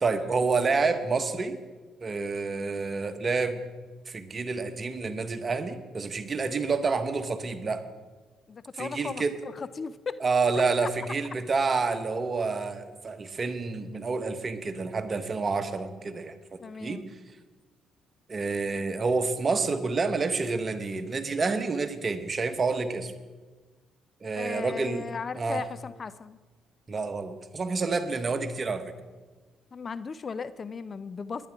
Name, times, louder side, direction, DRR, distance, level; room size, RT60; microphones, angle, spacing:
voice 1, 0.0-1.6 2.0-3.6 4.1-7.8 8.7-9.4 10.2-16.4 16.8-17.0 18.3-23.1 24.2-25.1 25.3-25.6 26.9-28.9, right 4 dB, 40° right, 9 dB, 1.2 m, -28 dB
voice 2, 8.5-10.2 10.8-10.9 16.6-17.1 24.3-26.4 29.7-31.5, left 5 dB, 40° left, 15 dB, 0.5 m, -37 dB
21.0 x 9.9 x 3.6 m, 1.3 s
hypercardioid pair, 50°, 0 cm